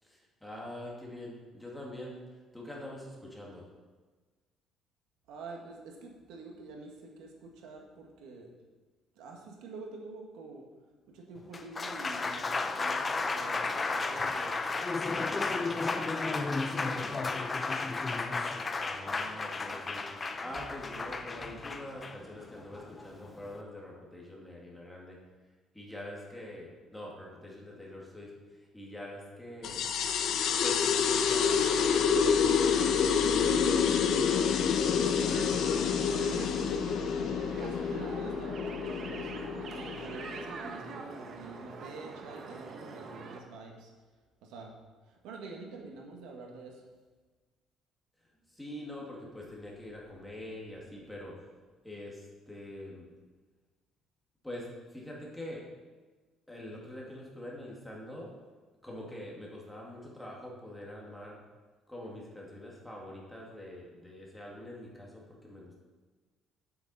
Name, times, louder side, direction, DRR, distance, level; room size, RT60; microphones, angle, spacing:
voice 1, 0.0-2.2 2.5-3.7 18.8-20.1 20.4-25.2 25.7-29.9 30.6-33.9 48.5-51.4 51.8-53.1 54.4-55.7 56.5-58.3 58.8-61.4 61.9-65.8, left 1 dB, 5° left, -3 dB, 2.1 m, -44 dB
voice 2, 5.3-8.5 9.1-10.6 11.1-14.6 15.1-17.4 36.1-43.9 44.4-44.7 45.0-46.8, right 3 dB, 90° right, 1 dB, 1.7 m, -47 dB
Applause, 11.4-23.6, left 3 dB, 20° left, 0.6 m, -33 dB
sound 1, 29.6-40.7, left 6 dB, 60° left, 0.8 m, -28 dB
sound 2, 35.3-43.4, right 4 dB, 45° right, 1.1 m, -44 dB
9.2 x 7.7 x 4.2 m, 1.3 s
cardioid pair, 140°, 0 cm